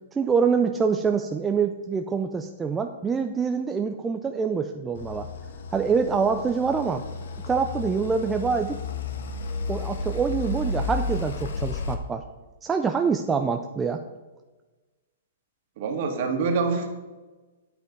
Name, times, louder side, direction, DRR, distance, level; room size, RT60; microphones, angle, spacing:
voice 1, 0.1-5.3 5.7-7.0 7.5-8.8 9.7-12.2 12.6-14.0, right 5 dB, 10° right, 5 dB, 0.4 m, -25 dB
sound 1, 4.9-11.9, left 3 dB, 70° left, 1.4 m, -32 dB
voice 2, 15.8-16.9, right 4 dB, 40° right, 3 dB, 1.8 m, -25 dB
9.6 x 8.2 x 5.2 m, 1.2 s
hypercardioid pair, 170°, 0 cm